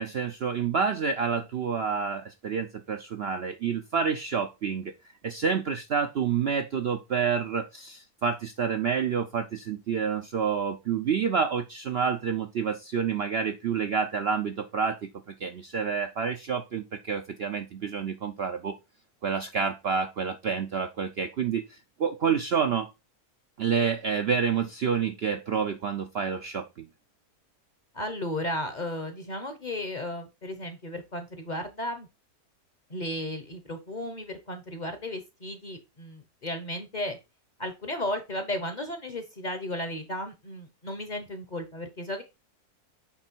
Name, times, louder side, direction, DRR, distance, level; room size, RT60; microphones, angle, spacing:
voice 1, 0.0-4.9 5.2-18.8 19.2-22.9 23.6-26.9, right 6 dB, 60° right, 0.7 m, -28 dB
voice 2, 27.9-32.1 32.9-37.2 37.6-42.2, left 1 dB, 35° left, 0.9 m, -34 dB
8.4 x 3.3 x 4.5 m
omnidirectional pair, 1.6 m